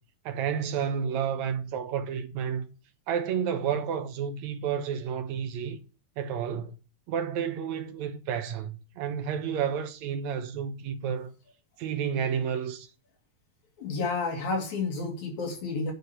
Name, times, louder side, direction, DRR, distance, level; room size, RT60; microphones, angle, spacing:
voice 1, 0.3-2.7 3.1-5.8 6.2-6.7 7.1-11.3 11.8-12.9, right 7 dB, 75° right, 2.2 m, -31 dB
voice 2, 13.8-15.9, left 3 dB, 75° left, 3.8 m, -30 dB
9.3 x 5.0 x 6.8 m
omnidirectional pair, 3.4 m